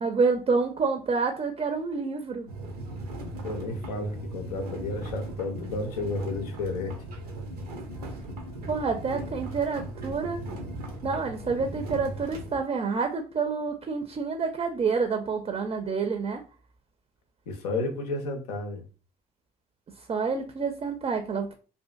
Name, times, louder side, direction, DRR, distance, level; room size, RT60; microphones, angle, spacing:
voice 1, 0.0-2.5 8.7-10.4 11.0-16.4 20.1-21.6, right 4 dB, 30° right, 0.4 m, -28 dB
sound 1, 2.5-12.6, right 1 dB, 85° right, 0.6 m, -38 dB
voice 2, 3.4-7.0 17.5-18.8, left 2 dB, 85° left, 0.5 m, -32 dB
2.5 x 2.4 x 2.3 m
hypercardioid pair, 45°, 20 cm